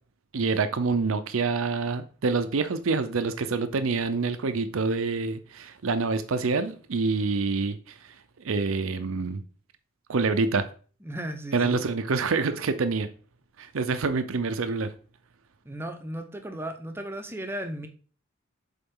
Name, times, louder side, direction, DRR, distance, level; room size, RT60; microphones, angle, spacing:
voice 1, 0.3-7.8 8.4-9.4 10.1-10.6 11.5-13.1 13.6-14.9, right 4 dB, 70° right, 0.6 m, -26 dB
voice 2, 11.0-11.9 15.6-17.9, right 1 dB, 10° right, 0.7 m, -35 dB
6.9 x 4.4 x 3.7 m
head